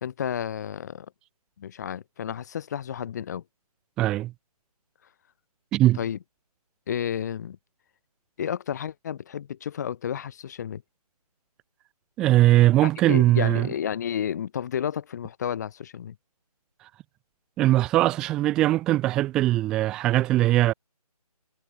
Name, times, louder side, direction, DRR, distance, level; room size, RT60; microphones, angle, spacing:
voice 1, 0.0-1.1 1.6-3.4 6.0-6.2 6.9-7.6 8.4-10.8 12.8-16.2, left 9 dB, 25° left, 2.4 m, -31 dB
voice 2, 4.0-4.3 5.7-6.0 12.2-13.7 17.6-20.7, right 15 dB, 5° right, 0.5 m, -20 dB
figure-of-eight pair, 155°, 20 cm